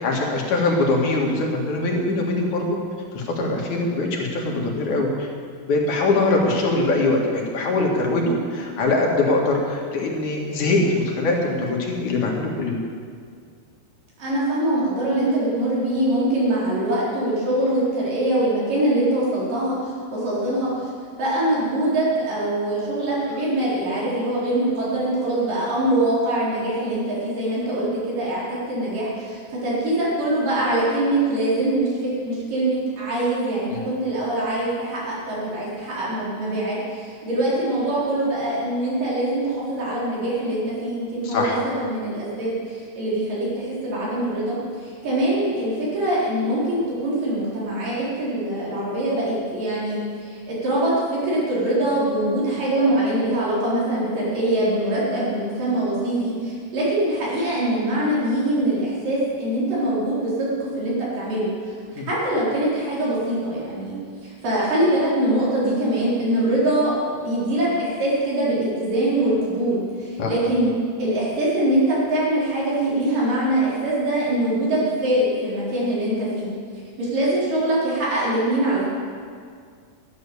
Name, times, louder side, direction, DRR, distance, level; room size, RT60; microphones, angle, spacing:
voice 1, 0.0-2.6 3.1-5.3 5.6-12.8 33.7-33.8 41.2-41.6 62.0-62.1 70.2-70.3, left 2 dB, 65° left, -1 dB, 3.2 m, -22 dB
voice 2, 14.2-20.7 21.2-61.7 62.1-70.7 71.0-76.5 77.0-78.9, right 1 dB, 85° right, -7 dB, 5.6 m, -23 dB
12.5 x 10.5 x 6.9 m, 2.1 s
omnidirectional pair, 3.7 m